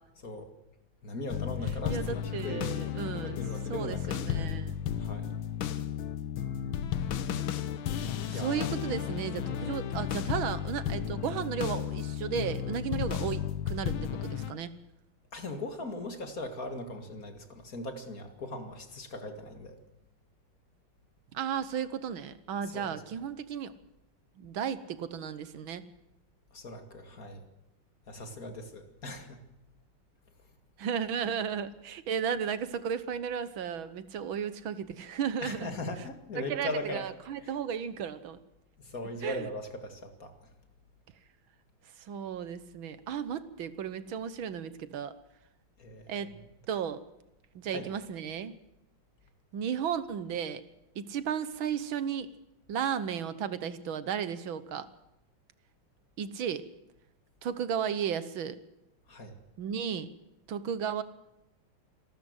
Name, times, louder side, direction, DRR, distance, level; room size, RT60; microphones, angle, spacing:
voice 1, 1.0-2.7 3.1-4.5 5.0-5.3 8.3-8.7 15.3-19.8 22.7-23.0 26.5-27.5 28.1-29.4 35.4-37.1 37.4-37.5 38.8-40.3 45.8-46.3 47.7-47.9 59.1-59.4, left 2 dB, 40° left, 7 dB, 2.5 m, -39 dB
sound 1, 1.3-14.5, left 9 dB, 70° left, 1.8 m, -33 dB
voice 2, 1.9-3.4 3.7-4.8 8.0-14.7 21.3-23.7 24.4-25.8 30.8-35.7 36.4-38.4 39.2-39.5 42.0-45.1 46.1-46.3 46.7-47.0 47.6-48.6 49.5-50.6 51.0-52.3 52.7-54.9 56.2-56.6 57.4-58.6 59.6-60.1 60.5-61.0, right 8 dB, 70° right, 14 dB, 1.8 m, -34 dB
26.5 x 13.0 x 7.9 m, 0.89 s
omnidirectional pair, 2.4 m